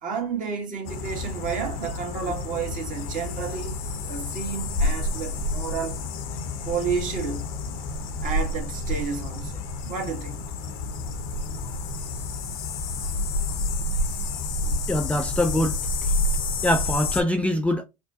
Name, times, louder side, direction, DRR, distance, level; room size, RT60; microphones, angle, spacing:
voice 1, 0.0-3.8 4.1-6.0 6.6-7.5 8.2-10.4 14.6-14.8, right 6 dB, 45° right, 1.6 m, -31 dB
sound 1, 0.8-17.2, left 2 dB, 70° left, 0.9 m, -29 dB
voice 2, 14.9-15.8 16.6-17.8, left 1 dB, 5° left, 0.5 m, -23 dB
4.2 x 2.2 x 2.7 m
hypercardioid pair, 85°, 19 cm